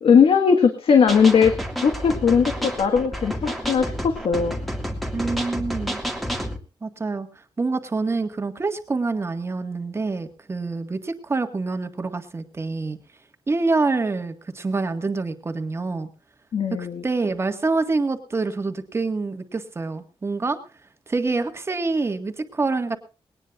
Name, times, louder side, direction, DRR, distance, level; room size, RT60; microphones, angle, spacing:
voice 1, 0.0-1.5 1.8-4.6 16.5-17.0, left 6 dB, 75° left, 6 dB, 1.7 m, -18 dB
sound 1, 1.1-6.6, equal, ahead, 2.0 m, -29 dB
voice 2, 5.1-6.0 6.8-7.3 7.6-13.0 13.5-16.1 16.8-20.6 21.1-23.0, right 3 dB, 25° right, 7 dB, 1.7 m, -26 dB
20.5 x 18.5 x 2.5 m, 0.31 s
wide cardioid pair, 150°, 10 cm